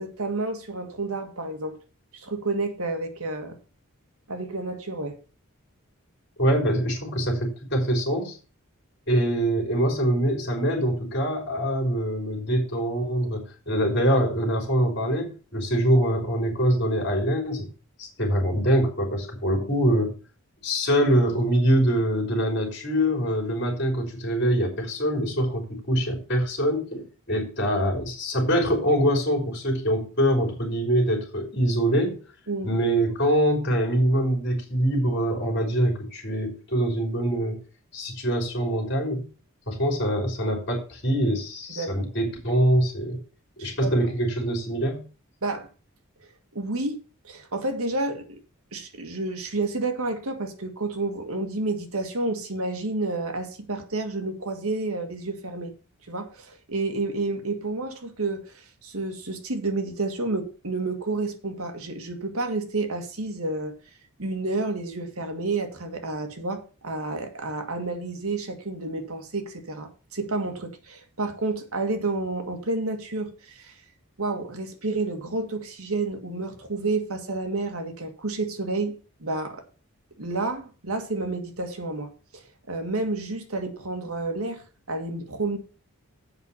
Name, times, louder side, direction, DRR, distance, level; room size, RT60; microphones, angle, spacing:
voice 1, 0.0-1.8 2.1-3.6 4.3-5.2 32.5-32.7 41.7-42.1 43.6-43.9 45.4-45.7 46.5-47.0 47.2-48.4 48.7-55.7 56.1-63.7 64.2-73.8 74.2-79.6 80.2-85.6, right 2 dB, 75° right, 1.8 m, -30 dB
voice 2, 6.4-8.4 9.1-17.7 18.0-20.1 20.6-32.2 32.6-37.6 37.9-39.3 39.7-43.2 43.6-45.1, equal, 50° left, 3.7 m, -24 dB
7.9 x 5.5 x 7.1 m
head